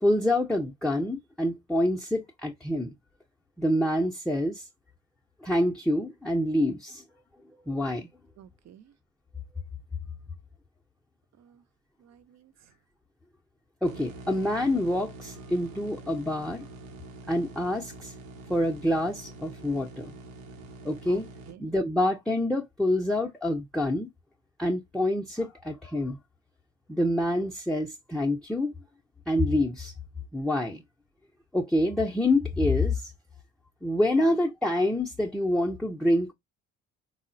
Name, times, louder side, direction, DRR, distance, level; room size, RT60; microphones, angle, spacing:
voice 1, 0.0-2.9 3.6-4.7 5.4-7.0 7.7-8.1 13.8-16.6 17.3-18.1 18.5-20.2 20.8-21.3 21.6-24.1 24.6-26.2 26.9-28.7 29.3-29.9 30.3-30.8 31.5-33.1 33.8-36.3, left 1 dB, ahead, 0.5 m, -26 dB
voice 2, 8.4-8.9 11.4-11.6 12.0-12.7 21.1-21.7 34.1-34.3, right 10 dB, 50° right, 0.5 m, -50 dB
sound 1, 13.8-21.5, right 2 dB, 80° right, 0.8 m, -45 dB
3.6 x 2.1 x 2.5 m
supercardioid pair, 60°, 35 cm